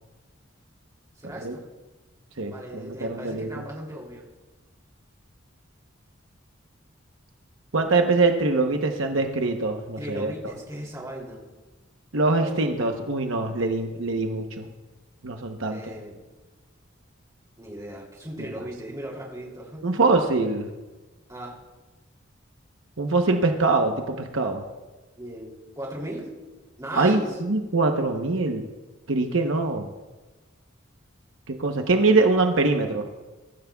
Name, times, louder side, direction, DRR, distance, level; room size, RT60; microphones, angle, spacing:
voice 1, 1.2-1.6 2.5-4.2 10.0-11.4 12.4-12.6 15.7-16.1 17.6-19.9 21.3-21.6 25.2-26.3 26.8-27.3, right 1 dB, 15° right, -3 dB, 3.0 m, -37 dB
voice 2, 2.4-3.5 7.7-10.3 12.1-14.7 15.2-15.8 18.4-18.5 19.8-20.7 23.0-24.6 26.9-28.6 29.1-29.9 31.5-33.1, right 3 dB, 80° right, 4 dB, 0.9 m, -23 dB
23.0 x 14.0 x 2.3 m, 1.2 s
head